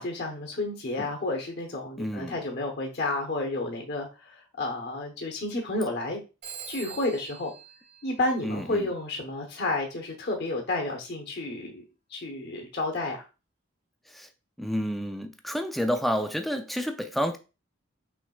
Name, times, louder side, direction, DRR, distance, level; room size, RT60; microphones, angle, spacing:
voice 1, 0.0-6.2 6.7-7.5 8.0-11.8 12.1-13.3, left 2 dB, 55° left, 1.0 m, -31 dB
voice 2, 2.0-2.4 8.4-8.9 14.1-14.3 14.6-17.4, equal, ahead, 0.4 m, -30 dB
Telephone, 6.4-8.9, right 8 dB, 50° right, 2.3 m, -45 dB
6.0 x 3.4 x 2.3 m
head